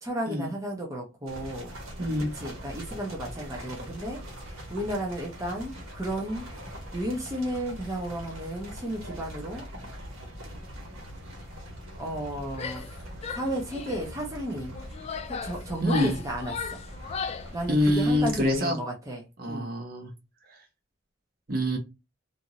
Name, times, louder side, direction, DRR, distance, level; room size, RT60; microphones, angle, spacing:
voice 1, 0.0-1.7 2.4-4.2 4.7-6.5 6.9-9.6 12.0-12.8 13.3-14.8 15.3-16.8 17.5-19.7, right 1 dB, 15° right, -1 dB, 0.6 m, -33 dB
sound 1, 1.3-18.6, equal, 85° right, 1.2 m, -42 dB
voice 2, 2.0-2.3 15.8-16.2 17.7-18.8 19.4-20.1 20.5-20.6 21.5-21.8, left 1 dB, 50° right, 2 dB, 0.8 m, -25 dB
Female speech woman speaking / Yell, 12.5-12.9 13.2-14.1 14.7-17.5, left 6 dB, 30° left, 0.3 m, -36 dB
2.6 x 2.5 x 2.8 m, 0.26 s
head